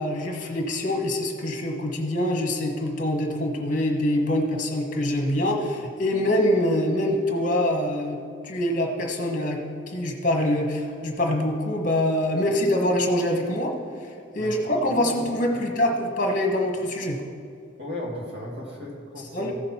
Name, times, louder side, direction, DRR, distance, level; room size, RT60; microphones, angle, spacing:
voice 1, 0.0-8.2 8.4-9.6 9.9-13.7 14.3-17.2 19.3-19.5, left 1 dB, 40° left, 2 dB, 1.3 m, -24 dB
voice 2, 14.3-15.3 15.5-15.9 17.8-19.5, left 1 dB, 55° right, -3 dB, 2.2 m, -36 dB
15.0 x 6.5 x 4.4 m, 2.3 s
head